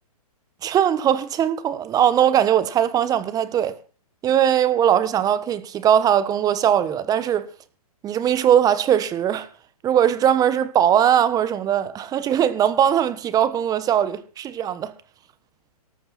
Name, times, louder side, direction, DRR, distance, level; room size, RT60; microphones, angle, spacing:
voice 1, 0.6-3.7 4.2-7.5 8.0-9.5 9.8-14.9, right 9 dB, 20° right, 1.3 m, -20 dB
18.0 x 14.0 x 4.3 m
hypercardioid pair, 125°, 20 cm